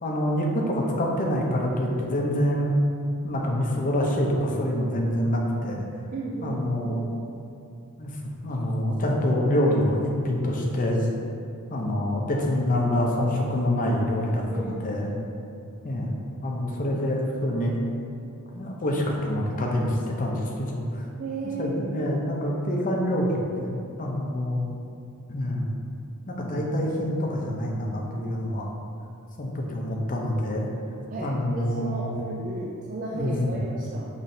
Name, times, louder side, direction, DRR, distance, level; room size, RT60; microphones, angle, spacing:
voice 1, 0.0-2.7 3.2-5.8 6.4-7.0 8.0-8.1 8.4-11.1 11.7-15.2 15.8-16.2 16.4-17.8 18.5-20.8 21.6-23.7 24.0-24.7 25.3-25.7 26.3-28.7 29.4-30.7 31.2-32.1 33.1-33.5 33.8-33.9, left 1 dB, 40° left, -1 dB, 0.6 m, -26 dB
voice 2, 6.1-7.1 14.5-14.8 21.2-22.2 31.1-34.1, right 2 dB, 40° right, -4 dB, 0.3 m, -34 dB
5.5 x 3.1 x 2.7 m, 2.5 s
head